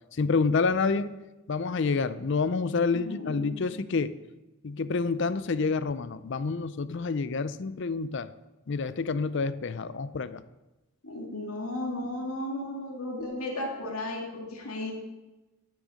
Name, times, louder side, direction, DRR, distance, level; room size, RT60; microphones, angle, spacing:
voice 1, 0.1-1.1 1.5-4.2 4.6-8.3 8.7-10.4, left 4 dB, 55° left, 15 dB, 0.5 m, -28 dB
voice 2, 2.9-3.7 11.0-14.9, left 1 dB, 90° left, 0 dB, 2.2 m, -35 dB
11.5 x 6.4 x 6.3 m, 1.1 s
head